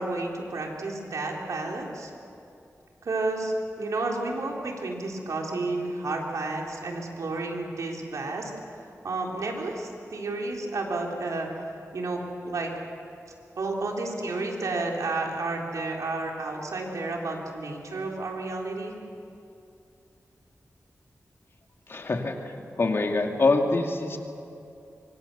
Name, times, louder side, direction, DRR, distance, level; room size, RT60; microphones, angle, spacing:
voice 1, 0.0-2.1 3.0-8.5 9.0-11.5 11.9-12.7 13.6-19.0, right 2 dB, 85° right, 0 dB, 3.7 m, -31 dB
voice 2, 21.9-22.4 22.8-24.2, left 3 dB, 50° left, 3 dB, 2.3 m, -24 dB
25.0 x 25.0 x 6.9 m, 2.7 s
wide cardioid pair, 130°, 5 cm